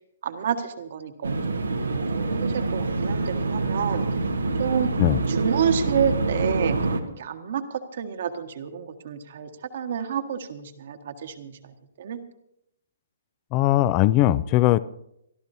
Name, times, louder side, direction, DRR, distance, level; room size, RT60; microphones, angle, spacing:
voice 1, 0.2-4.1 4.6-4.9 5.3-12.2, right 8 dB, 55° right, 6 dB, 1.6 m, -29 dB
sound 1, 1.2-7.0, right 3 dB, 85° right, 1.3 m, -26 dB
voice 2, 13.5-14.8, left 15 dB, 30° left, 18 dB, 0.5 m, -19 dB
27.5 x 13.0 x 2.8 m, 0.78 s
figure-of-eight pair, 130°, 0 cm